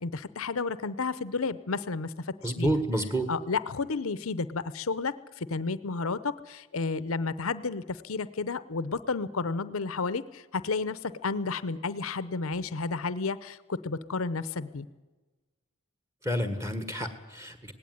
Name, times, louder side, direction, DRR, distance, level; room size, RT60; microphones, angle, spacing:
voice 1, 0.0-2.8 3.3-14.9, left 4 dB, 70° left, 16 dB, 0.7 m, -32 dB
voice 2, 2.4-3.3 16.2-17.7, right 1 dB, 15° right, 9 dB, 1.5 m, -29 dB
18.0 x 17.0 x 9.6 m, 1.2 s
head